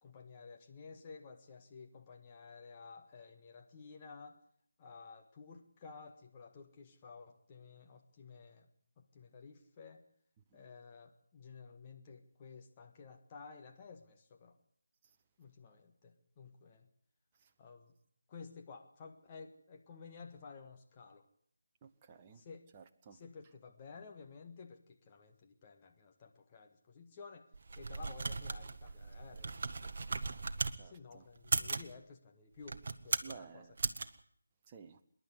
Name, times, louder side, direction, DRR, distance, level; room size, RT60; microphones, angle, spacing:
voice 1, 0.0-4.4 4.8-8.7 9.0-10.0 10.5-14.6 15.4-16.9 17.6-17.9 18.3-21.2 22.3-22.6 23.1-27.5 27.8-29.5 29.8-29.9 30.8-33.7, left 5 dB, 25° left, 1.6 m, -53 dB
voice 2, 21.8-22.4 22.7-23.2 30.8-31.3 33.2-33.8 34.7-35.0, right 6 dB, 20° right, 1.1 m, -54 dB
sound 1, 27.5-30.8 31.4-31.9 32.6-33.4 33.8-34.1, right 3 dB, 45° right, 1.2 m, -37 dB
25.5 x 11.0 x 9.6 m
figure-of-eight pair, 155°, 0 cm